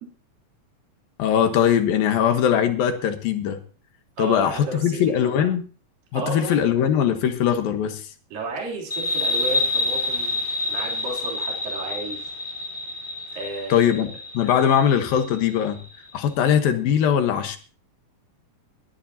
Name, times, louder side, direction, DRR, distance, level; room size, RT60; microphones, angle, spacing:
voice 1, 1.2-3.6 4.2-5.6 6.1-8.1 13.7-14.1 14.3-15.8 16.1-17.6, left 9 dB, 75° left, 3.1 m, -21 dB
voice 2, 4.2-5.5 6.1-6.5 8.3-10.4 10.7-12.2 13.3-14.0, right 3 dB, 70° right, 5.0 m, -33 dB
sound 1, 8.9-16.1, left 2 dB, 15° left, 4.5 m, -28 dB
21.5 x 12.0 x 2.8 m
omnidirectional pair, 4.2 m